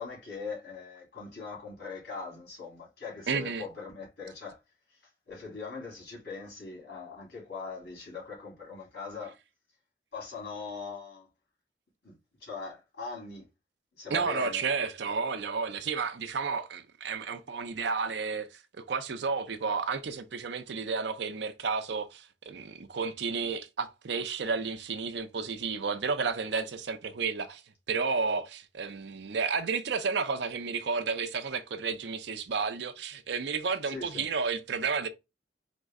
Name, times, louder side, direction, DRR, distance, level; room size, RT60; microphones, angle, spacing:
voice 1, 0.0-4.6 4.9-5.0 5.3-9.3 10.1-11.3 12.0-12.1 12.4-13.5 13.9-14.6 33.8-34.3, left 4 dB, 60° left, 2.6 m, -41 dB
voice 2, 3.3-3.7 14.1-27.6 27.9-35.1, right 5 dB, 70° right, 0.5 m, -32 dB
4.3 x 2.1 x 3.6 m
head